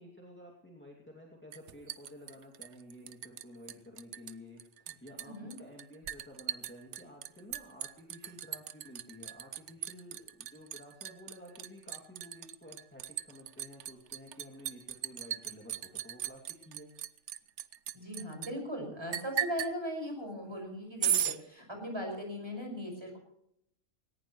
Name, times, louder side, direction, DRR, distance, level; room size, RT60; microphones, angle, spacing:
voice 1, 0.0-16.9, left 1 dB, 10° left, -2 dB, 2.5 m, -52 dB
Liquid, 1.5-3.4 3.7-4.3 4.6-18.5 19.1-19.7 21.0-21.4, right 10 dB, 70° right, 1.0 m, -37 dB
voice 2, 17.9-23.2, equal, 20° right, 1 dB, 5.8 m, -39 dB
19.0 x 19.0 x 3.1 m, 0.74 s
omnidirectional pair, 1.3 m